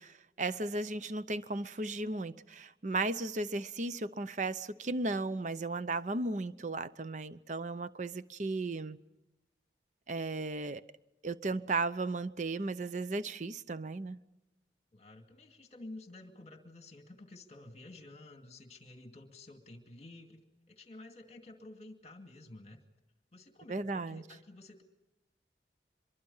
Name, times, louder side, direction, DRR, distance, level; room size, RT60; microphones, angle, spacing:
voice 1, 0.0-9.0 10.1-10.8 11.2-14.2 23.7-24.2, right 2 dB, 45° right, 0.7 m, -35 dB
voice 2, 14.9-22.8 23.3-24.8, left 2 dB, 35° left, 2.2 m, -51 dB
25.0 x 23.0 x 5.6 m
head